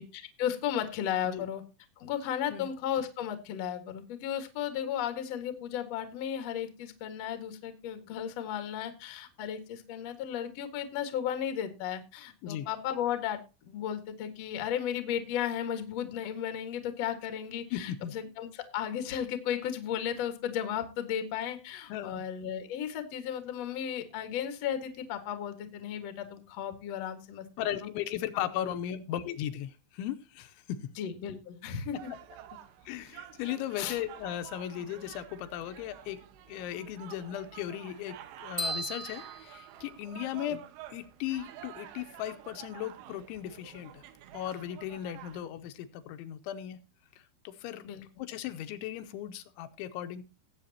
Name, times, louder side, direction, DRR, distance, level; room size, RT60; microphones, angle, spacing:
voice 1, 0.0-1.6 2.0-27.4 27.7-27.9 28.3-28.8 31.0-32.1 33.8-34.0 40.5-40.6 47.8-48.1, left 9 dB, 65° left, 8 dB, 1.6 m, -35 dB
voice 2, 17.7-18.1 21.9-22.2 27.6-30.6 32.9-36.2 36.5-40.6 40.9-44.0 44.3-46.8 47.4-47.9 48.2-50.2, left 11 dB, 80° left, 10 dB, 3.0 m, -37 dB
sound 1, 31.9-45.4, right 11 dB, 90° right, 3.8 m, -49 dB
sound 2, 38.6-40.5, equal, 30° right, 0.8 m, -37 dB
19.5 x 7.9 x 2.8 m, 0.29 s
omnidirectional pair, 5.7 m